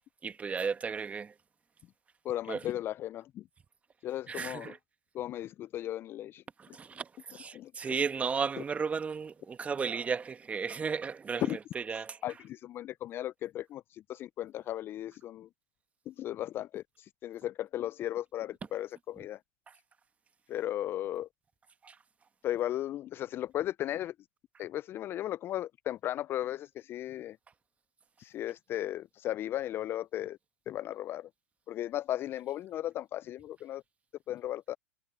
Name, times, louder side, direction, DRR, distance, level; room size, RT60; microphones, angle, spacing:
voice 1, 0.2-1.3 2.5-2.6 4.3-4.8 6.6-12.2 21.8-21.9, right 5 dB, 15° right, 1.5 m, -34 dB
voice 2, 2.2-3.4 4.0-4.8 5.1-6.4 7.5-7.9 11.4-11.6 11.9-15.5 16.1-19.4 20.5-21.3 22.4-24.1 24.6-27.4 28.2-30.4 30.7-31.3 31.7-33.8 34.3-34.8, left 13 dB, 30° left, 0.4 m, -36 dB
hypercardioid pair, 105°, 8 cm